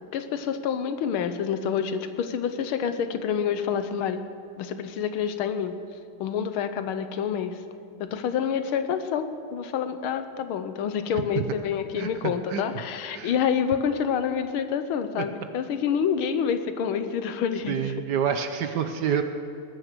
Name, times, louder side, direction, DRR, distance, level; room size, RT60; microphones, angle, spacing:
voice 1, 0.1-4.2 4.6-5.8 6.2-7.6 8.0-17.9, left 7 dB, 85° left, 9 dB, 1.7 m, -27 dB
voice 2, 12.0-12.6 13.1-13.3 17.7-19.2, right 8 dB, 65° right, 8 dB, 1.2 m, -27 dB
19.5 x 9.9 x 6.7 m, 2.5 s
omnidirectional pair, 2.3 m